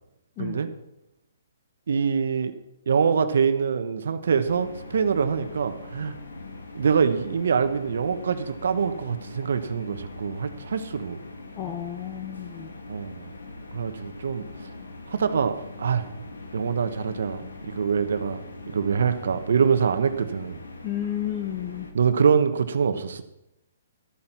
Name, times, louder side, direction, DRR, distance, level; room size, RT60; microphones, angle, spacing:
voice 1, 0.4-0.7 1.9-2.5 2.9-6.1 6.7-11.2 12.9-13.3 13.7-14.7 15.1-16.1 16.5-18.4 18.7-20.6 21.9-23.2, right 6 dB, 70° right, 10 dB, 1.2 m, -24 dB
sound 1, 4.4-21.9, left 2 dB, 90° left, 1.9 m, -42 dB
voice 2, 11.6-12.7 20.8-21.9, left 11 dB, 30° left, 6 dB, 1.1 m, -32 dB
13.5 x 8.9 x 5.9 m, 0.89 s
hypercardioid pair, 135°, 0 cm